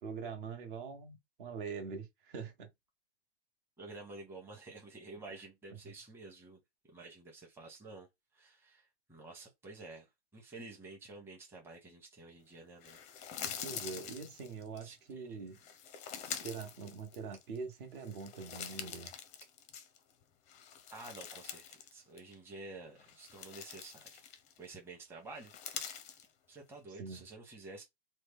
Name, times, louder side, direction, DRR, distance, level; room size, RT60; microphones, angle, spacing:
voice 1, 0.0-2.7 13.6-15.6 16.4-19.1 27.0-27.2, right 5 dB, 55° right, 1.1 m, -43 dB
voice 2, 3.8-6.6 6.9-8.1 8.3-13.0 14.8-15.4 20.9-24.2 24.6-25.9 26.5-27.8, right 3 dB, 5° right, 0.8 m, -50 dB
sound 1, 12.8-14.8 15.5-17.6 17.9-20.1 20.5-21.9 22.2-22.3 23.0-24.6 25.3-26.3, left 8 dB, 20° left, 0.5 m, -45 dB
3.1 x 2.1 x 3.5 m
hypercardioid pair, 130°, 32 cm